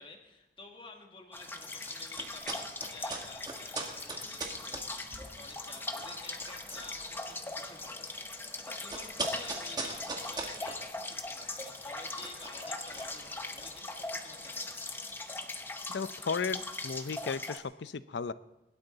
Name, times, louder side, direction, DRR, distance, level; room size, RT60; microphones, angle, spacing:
voice 1, 0.0-15.1, left 3 dB, 30° left, 3 dB, 1.7 m, -51 dB
sound 1, 1.3-17.6, left 2 dB, 10° left, 0.8 m, -40 dB
sound 2, 1.7-13.8, right 3 dB, 25° right, 1.7 m, -43 dB
sound 3, 5.1-15.4, right 1 dB, 75° right, 6.8 m, -59 dB
voice 2, 15.9-18.3, left 5 dB, 85° left, 15 dB, 0.5 m, -35 dB
22.0 x 12.0 x 4.0 m, 0.94 s
head